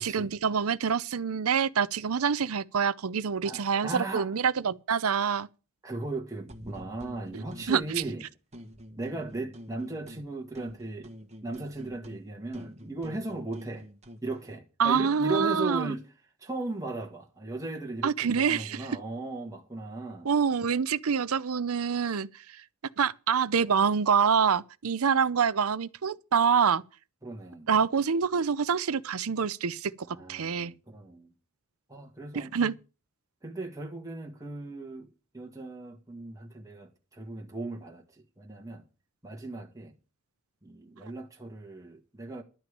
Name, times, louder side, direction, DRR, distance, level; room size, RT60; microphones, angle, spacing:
voice 1, 0.0-5.5 7.7-7.8 14.8-15.9 18.0-18.8 20.2-22.3 23.0-26.8 27.7-29.9 30.3-30.7 32.3-32.7, right 6 dB, 75° right, 0.6 m, -26 dB
voice 2, 3.4-4.3 5.8-8.3 9.0-11.1 11.4-13.9 14.2-16.1 16.4-20.3 27.2-27.7 30.0-31.3 31.9-32.7 33.4-35.1 35.3-38.8 39.2-39.9 40.6-42.4, right 2 dB, 15° right, 1.8 m, -37 dB
sound 1, 6.5-8.2 8.5-10.3 10.5-14.3, equal, 30° right, 1.6 m, -47 dB
11.5 x 6.0 x 8.7 m
head